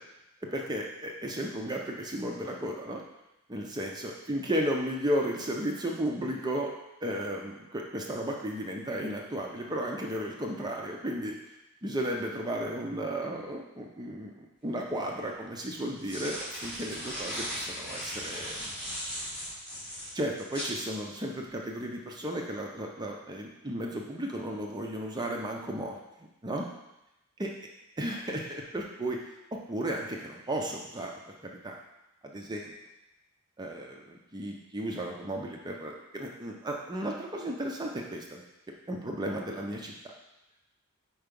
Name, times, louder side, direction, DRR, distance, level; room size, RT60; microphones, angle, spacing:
voice 1, 0.4-3.0 3.5-6.7 7.0-11.4 11.8-14.3 14.6-18.7 20.1-26.0 26.4-26.7 27.4-27.5 28.0-29.2 29.5-31.1 31.4-31.8 32.2-32.7 33.6-38.4 38.9-39.9, right 1 dB, 20° right, 0 dB, 0.5 m, -34 dB
sound 1, 14.7-14.8 15.8-20.7, equal, 5° left, 2.3 m, -37 dB
4.6 x 4.6 x 5.2 m, 0.93 s
head